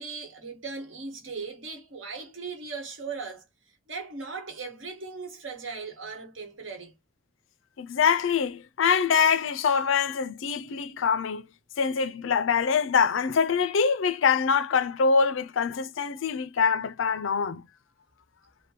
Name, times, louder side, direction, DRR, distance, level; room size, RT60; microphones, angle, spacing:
voice 1, 0.0-3.4 3.9-6.9, right 4 dB, 85° right, 1.3 m, -38 dB
voice 2, 7.8-11.5 11.8-17.6, left 6 dB, 90° left, 0.5 m, -24 dB
3.4 x 2.2 x 2.8 m
head